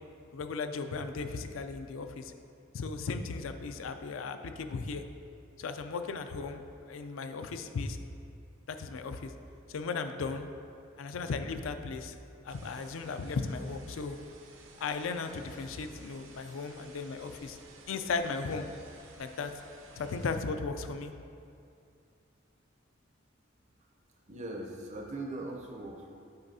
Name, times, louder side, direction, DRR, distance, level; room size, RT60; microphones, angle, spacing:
voice 1, 0.3-2.3 2.7-5.0 5.6-6.6 6.9-8.0 8.7-9.3 9.7-10.5 11.0-12.1 12.4-14.2 14.8-17.6 17.9-18.7 19.2-19.5 20.0-21.1, left 4 dB, 80° left, 8 dB, 0.4 m, -36 dB
sound 1, 12.5-20.4, right 3 dB, 80° right, 0.8 m, -55 dB
voice 2, 24.3-26.1, right 2 dB, 35° right, 0 dB, 0.5 m, -40 dB
9.4 x 4.8 x 2.7 m, 2.5 s
head